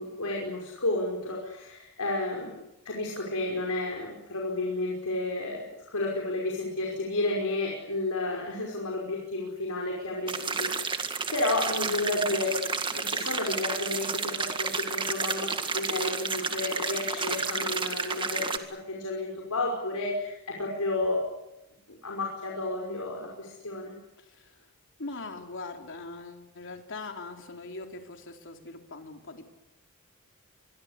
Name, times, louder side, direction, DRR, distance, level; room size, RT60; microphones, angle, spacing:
voice 1, 0.0-2.6 2.9-12.6 12.9-21.2 22.0-23.9, left 2 dB, 85° left, -1 dB, 5.4 m, -31 dB
sound 1, 10.3-18.6, right 4 dB, 20° right, 1.9 m, -31 dB
voice 2, 24.2-24.7 25.0-29.5, left 3 dB, 60° left, 4 dB, 3.7 m, -41 dB
26.5 x 22.5 x 8.3 m, 0.92 s
head